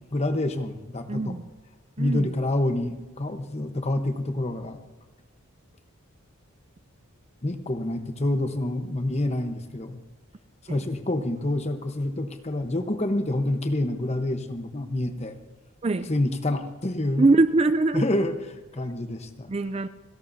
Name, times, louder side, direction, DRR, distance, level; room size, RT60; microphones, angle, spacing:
voice 1, 0.0-1.4 2.0-4.8 7.4-10.0 10.6-15.4 16.1-17.3 17.9-19.5, left 1 dB, 30° left, 7 dB, 1.0 m, -27 dB
voice 2, 1.1-1.4 2.0-2.3 10.7-10.8 15.8-16.1 17.2-18.0 19.5-19.9, right 3 dB, 25° right, 12 dB, 0.4 m, -22 dB
29.5 x 12.0 x 2.7 m, 1.2 s
head